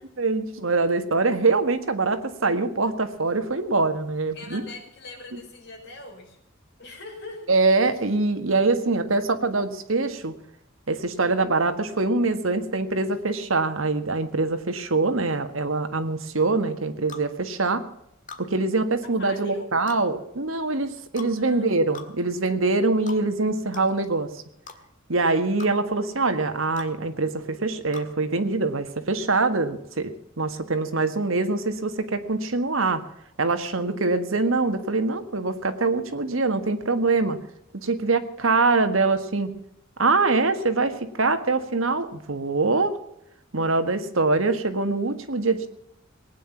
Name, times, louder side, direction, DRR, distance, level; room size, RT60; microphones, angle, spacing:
voice 1, 0.2-4.6 7.5-10.3 10.9-17.8 18.4-24.3 25.1-30.1 30.4-33.0 33.4-37.4 37.7-39.5 40.0-42.9 43.5-45.7, right 3 dB, 75° right, 8 dB, 1.7 m, -24 dB
voice 2, 4.3-6.4 6.8-7.5 19.2-19.7 21.4-21.7, left 3 dB, 60° left, 0 dB, 5.2 m, -42 dB
sound 1, 17.1-17.3 18.3-18.5 19.9-20.0 21.2-21.3 21.9-22.1 23.1-23.2 23.7-23.9 24.7-24.8 25.6-25.7 26.8-26.9 27.9-28.1, left 5 dB, 40° left, 1.8 m, -40 dB
19.5 x 9.6 x 7.2 m, 0.76 s
head